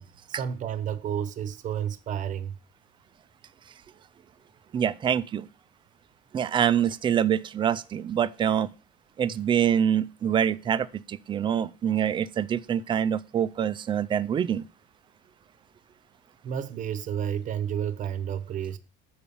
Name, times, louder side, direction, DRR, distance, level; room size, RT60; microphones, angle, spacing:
voice 1, 0.0-2.6 16.4-18.8, right 9 dB, 40° right, 0.8 m, -31 dB
voice 2, 4.7-5.5 6.3-8.7 9.2-14.7, right 9 dB, 25° right, 0.4 m, -25 dB
6.9 x 4.8 x 7.0 m
cardioid pair, 140°, 20 cm